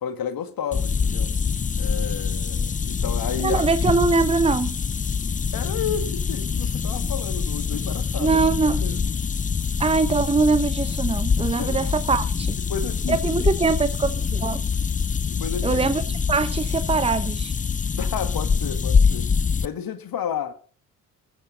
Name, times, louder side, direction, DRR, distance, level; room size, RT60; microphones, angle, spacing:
voice 1, 0.0-1.3 1.8-3.7 5.5-8.4 8.6-9.0 11.6-11.8 12.7-13.5 15.2-15.9 18.0-19.3 19.6-20.5, left 8 dB, 45° left, 1.9 m, -31 dB
sound 1, 0.7-19.7, left 5 dB, 15° left, 0.6 m, -25 dB
voice 2, 3.4-4.8 8.1-8.8 9.8-12.6 13.1-14.6 15.6-16.0 16.3-17.5, right 4 dB, 10° right, 1.0 m, -22 dB
19.5 x 8.7 x 3.9 m
figure-of-eight pair, 40°, 50 cm